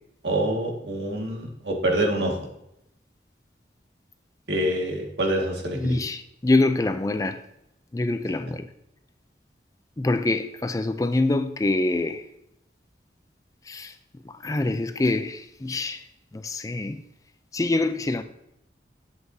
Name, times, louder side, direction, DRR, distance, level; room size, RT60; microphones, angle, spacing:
voice 1, 0.2-2.4 4.5-6.0, right 1 dB, 80° right, 1.9 m, -26 dB
voice 2, 5.7-7.4 7.9-8.7 10.0-12.3 13.7-13.9 14.3-16.0 16.3-17.0 17.5-18.2, left 2 dB, 20° left, 0.4 m, -25 dB
11.0 x 7.9 x 2.7 m
head